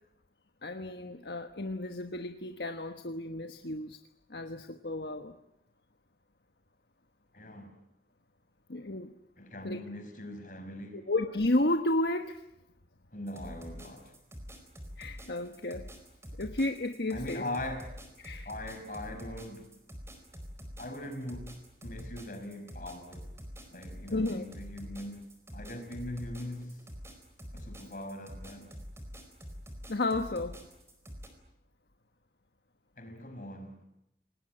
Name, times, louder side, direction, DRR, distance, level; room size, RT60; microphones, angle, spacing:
voice 1, 0.6-4.0 4.3-5.4 8.7-9.1 9.6-9.8 11.1-12.4 15.0-15.9 16.4-17.4 18.2-18.5 24.1-24.5 29.9-30.6, left 2 dB, 70° left, 1.3 m, -32 dB
voice 2, 7.3-7.8 9.4-11.0 13.1-14.1 17.1-18.0 18.5-19.7 20.8-23.3 23.7-25.2 25.5-26.8 27.5-28.7 33.0-33.8, left 1 dB, 50° left, 5.3 m, -41 dB
sound 1, 13.3-31.3, equal, 15° right, 4.5 m, -46 dB
28.5 x 19.5 x 9.1 m
head